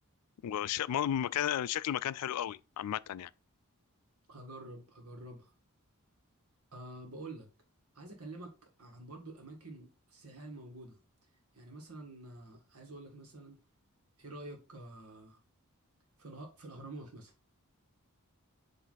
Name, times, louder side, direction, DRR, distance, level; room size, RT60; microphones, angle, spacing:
voice 1, 0.4-3.3, left 10 dB, 85° left, 0.3 m, -33 dB
voice 2, 4.3-5.5 6.7-7.5 7.9-8.5 8.8-11.0 11.5-13.6 14.2-15.4 16.2-17.3, right 2 dB, 70° right, 1.8 m, -48 dB
7.5 x 3.2 x 3.9 m
head